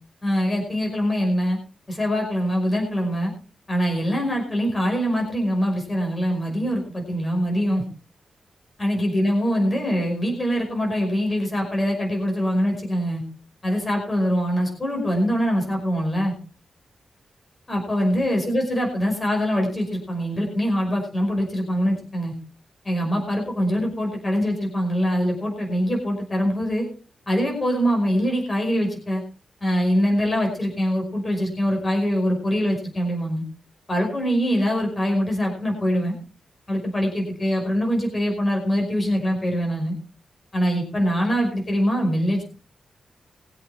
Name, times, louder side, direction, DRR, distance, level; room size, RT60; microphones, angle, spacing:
voice 1, 0.2-1.6 1.9-3.3 3.7-7.8 8.8-13.2 13.6-16.3 17.7-22.3 22.8-26.9 27.3-29.2 29.6-33.4 33.9-36.1 36.7-39.9 40.5-42.4, equal, 25° left, 1 dB, 5.4 m, -23 dB
22.0 x 8.4 x 4.3 m, 0.38 s
wide cardioid pair, 130°, 0 cm